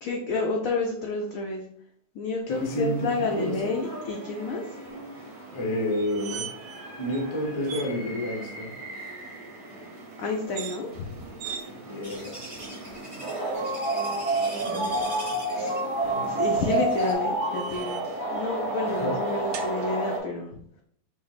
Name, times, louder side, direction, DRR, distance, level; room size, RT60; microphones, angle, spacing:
voice 1, 0.0-1.6 2.2-4.6 10.2-10.9 14.7-15.0 15.5-15.8 16.2-18.0 18.3-20.5, left 3 dB, 80° left, 1 dB, 0.7 m, -30 dB
voice 2, 2.5-3.6 5.5-6.5 7.0-8.7 11.8-12.4 14.6-15.3 18.8-19.2, equal, 45° left, 0 dB, 0.3 m, -30 dB
sound 1, 2.5-20.2, right 2 dB, 60° right, 1.8 m, -32 dB
sound 2, 5.9-6.8 7.1-7.2 7.6-7.9 10.4-10.8 11.4-11.6 12.3-12.9 13.9-14.7 16.6-18.2 19.5-19.7, right 8 dB, 80° right, 1.3 m, -41 dB
sound 3, 12.0-17.1, equal, 20° right, 1.0 m, -43 dB
4.9 x 2.1 x 4.0 m, 0.67 s
omnidirectional pair, 2.0 m